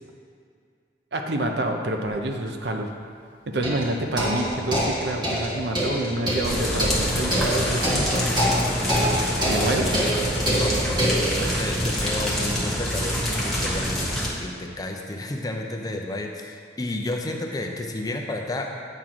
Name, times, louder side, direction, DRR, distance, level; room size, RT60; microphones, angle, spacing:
voice 1, 1.1-2.9 3.5-8.3 9.5-9.9, right 1 dB, 65° right, 4 dB, 0.7 m, -27 dB
sound 1, 2.1-2.2 3.6-11.4, equal, 25° right, 1.4 m, -26 dB
sound 2, 6.4-14.3, equal, ahead, 1.1 m, -26 dB
voice 2, 10.6-11.0 11.4-14.0 14.4-18.7, left 1 dB, 20° left, 1 dB, 0.5 m, -31 dB
8.9 x 3.7 x 6.0 m, 2.3 s
head